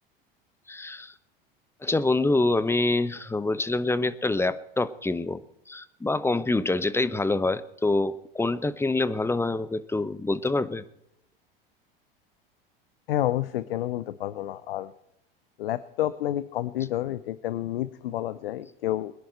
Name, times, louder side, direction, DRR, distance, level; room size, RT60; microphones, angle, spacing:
voice 1, 0.7-1.1 1.8-5.4 5.7-10.8, left 2 dB, 10° left, 15 dB, 0.9 m, -26 dB
voice 2, 13.1-14.9 15.6-19.1, left 13 dB, 75° left, 16 dB, 0.7 m, -29 dB
21.5 x 10.5 x 4.5 m, 0.80 s
hypercardioid pair, 80°, 29 cm